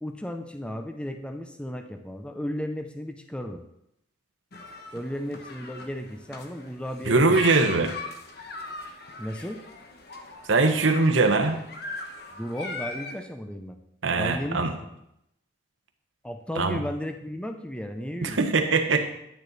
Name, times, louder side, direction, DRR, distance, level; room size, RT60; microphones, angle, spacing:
voice 1, 0.0-3.6 4.9-7.5 9.2-9.6 12.4-13.8 14.2-14.9 16.2-18.4, equal, 5° left, 6 dB, 0.6 m, -34 dB
sound 1, 4.5-13.2, left 3 dB, 50° left, 1.2 m, -39 dB
voice 2, 7.0-7.9 10.5-11.6 14.0-14.7 16.6-16.8 18.2-19.1, right 3 dB, 75° right, 6 dB, 1.0 m, -21 dB
10.5 x 9.4 x 4.1 m, 0.79 s
head